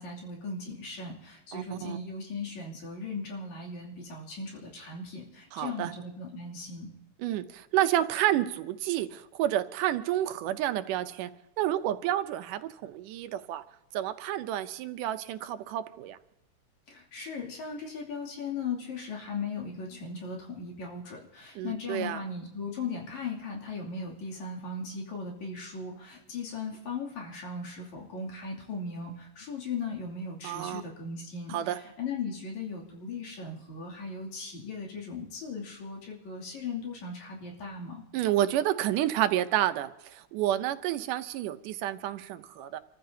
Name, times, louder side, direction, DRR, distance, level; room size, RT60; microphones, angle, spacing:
voice 1, 0.0-6.9 16.9-38.0, left 4 dB, 65° left, -2 dB, 3.9 m, -38 dB
voice 2, 1.5-2.0 5.5-5.9 7.2-11.3 11.6-13.6 13.9-16.2 21.6-22.2 30.4-30.8 31.5-31.8 38.1-42.8, right 12 dB, 80° right, 10 dB, 2.3 m, -30 dB
28.5 x 14.5 x 2.8 m, 0.90 s
omnidirectional pair, 3.7 m